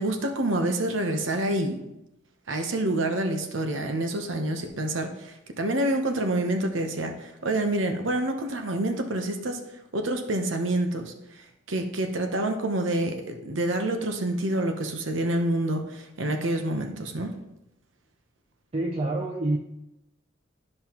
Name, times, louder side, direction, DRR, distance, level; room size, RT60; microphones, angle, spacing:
voice 1, 0.0-1.8 2.5-9.6 9.9-11.1 11.7-17.3, right 1 dB, 70° right, 5 dB, 0.9 m, -27 dB
voice 2, 18.7-19.6, right 2 dB, 30° right, 1 dB, 0.5 m, -27 dB
12.0 x 5.4 x 3.0 m, 0.89 s
head